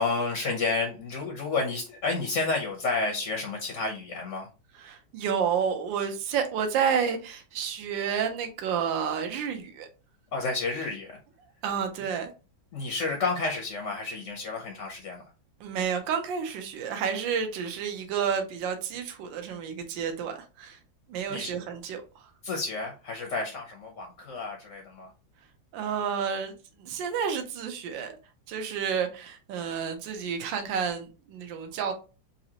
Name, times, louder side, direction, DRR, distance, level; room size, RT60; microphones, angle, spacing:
voice 1, 0.0-4.5 10.3-11.2 12.7-15.2 21.3-21.6 22.4-25.1, left 3 dB, 60° left, 0.8 m, -30 dB
voice 2, 4.8-9.9 11.6-12.3 15.6-20.8 21.1-22.3 25.7-28.2 28.5-31.9, right 7 dB, 75° right, 1.4 m, -30 dB
4.1 x 2.6 x 2.8 m
omnidirectional pair, 2.2 m